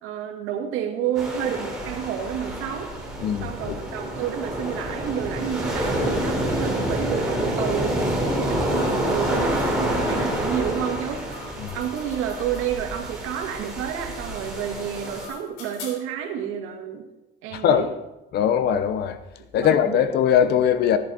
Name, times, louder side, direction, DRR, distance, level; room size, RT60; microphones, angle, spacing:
voice 1, 0.0-2.9 3.4-11.2 11.7-17.1 17.4-17.9 19.5-20.1, right 9 dB, 90° right, 2.0 m, -30 dB
sound 1, 1.1-15.3, right 1 dB, 5° right, 3.3 m, -27 dB
voice 2, 3.2-3.8 11.6-11.8 17.5-17.9 18.3-19.2 19.5-21.0, left 9 dB, 55° left, 0.9 m, -21 dB
sound 2, 9.6-9.7 10.9-13.0 14.6-16.2, left 5 dB, 85° left, 3.3 m, -44 dB
14.0 x 10.5 x 4.2 m
cardioid pair, 170°, 21 cm